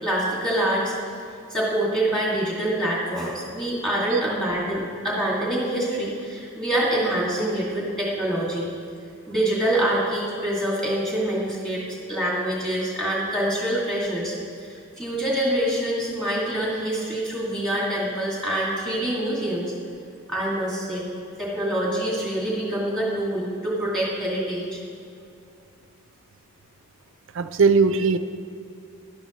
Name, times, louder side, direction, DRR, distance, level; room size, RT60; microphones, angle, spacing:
voice 1, 0.0-0.9 1.5-8.7 9.3-11.8 12.1-14.4 14.6-14.7 15.0-19.7 20.3-21.0 21.4-24.8, right 1 dB, 5° left, -6 dB, 2.3 m, -25 dB
voice 2, 27.3-28.2, right 4 dB, 55° right, 10 dB, 0.4 m, -19 dB
12.0 x 11.5 x 3.1 m, 2.5 s
head